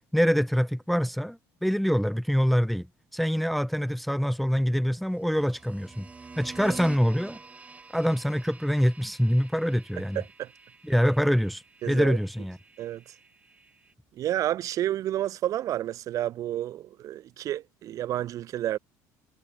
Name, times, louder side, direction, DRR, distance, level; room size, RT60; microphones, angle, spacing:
voice 1, 0.1-2.9 3.1-6.1 6.4-7.4 7.9-10.2 10.8-12.6, equal, ahead, 0.7 m, -25 dB
sound 1, 5.1-13.9, right 4 dB, 20° right, 5.8 m, -48 dB
voice 2, 10.1-10.5 11.8-12.2 12.8-13.0 14.2-18.8, right 12 dB, 50° right, 1.0 m, -30 dB
cardioid pair, 135°, 7 cm